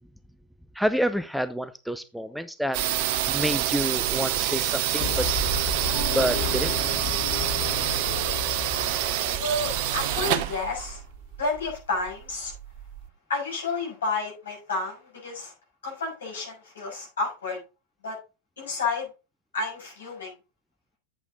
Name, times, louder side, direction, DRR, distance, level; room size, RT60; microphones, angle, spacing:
voice 1, 0.8-2.8 3.3-5.3 6.1-6.7, equal, ahead, 12 dB, 0.6 m, -28 dB
sound 1, 2.7-13.1, right 12 dB, 45° right, 0.7 m, -27 dB
sound 2, 5.0-11.0, left 10 dB, 40° left, 1.5 m, -34 dB
voice 2, 9.4-11.0 11.4-12.5 13.3-15.5 15.8-17.6 18.0-18.2 18.6-19.1 19.5-20.3, left 3 dB, 65° left, -1 dB, 6.3 m, -30 dB
8.3 x 8.2 x 3.7 m, 0.29 s
figure-of-eight pair, 90°, 0 cm